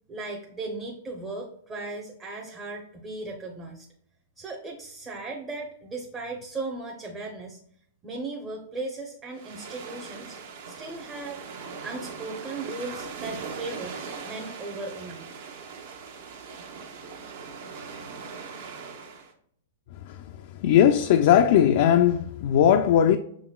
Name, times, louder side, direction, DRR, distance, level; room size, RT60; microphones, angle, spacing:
voice 1, 0.1-3.9 4.4-7.6 8.0-10.4 10.7-11.4 11.8-14.0 14.2-15.3, right 3 dB, 20° right, 0.7 m, -37 dB
sound 1, 9.3-19.3, right 5 dB, 60° right, 0.9 m, -40 dB
voice 2, 20.6-23.2, left 9 dB, 55° left, 0.3 m, -18 dB
6.0 x 3.8 x 2.3 m
hypercardioid pair, 130°, 0 cm